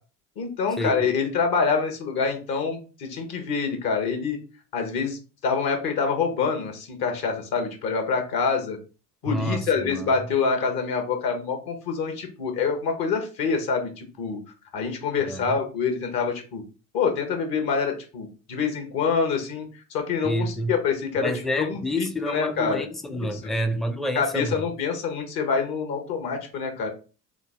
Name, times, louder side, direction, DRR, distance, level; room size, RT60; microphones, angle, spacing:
voice 1, 0.4-4.4 4.7-8.8 9.2-14.4 14.7-16.6 16.9-21.3 21.6-22.8 23.1-23.5 24.1-26.9, left 5 dB, 60° left, 1.2 m, -26 dB
voice 2, 9.3-10.1 15.2-15.5 20.2-20.7 21.2-24.6, equal, ahead, 0.4 m, -28 dB
3.7 x 2.0 x 3.5 m
hypercardioid pair, 60°, 42 cm